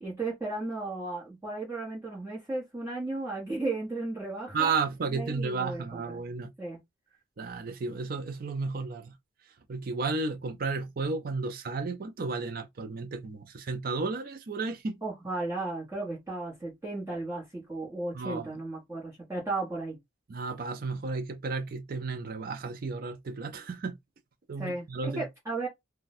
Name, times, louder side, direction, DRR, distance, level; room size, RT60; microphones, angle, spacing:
voice 1, 0.0-4.7 5.1-6.2 6.6-6.8 15.0-20.0 24.6-25.7, right 2 dB, 15° right, 1.3 m, -35 dB
voice 2, 4.5-6.5 7.4-9.1 9.7-15.0 18.1-18.5 20.3-24.0 24.5-25.2, right 4 dB, 50° right, 0.5 m, -33 dB
2.5 x 2.2 x 4.0 m
head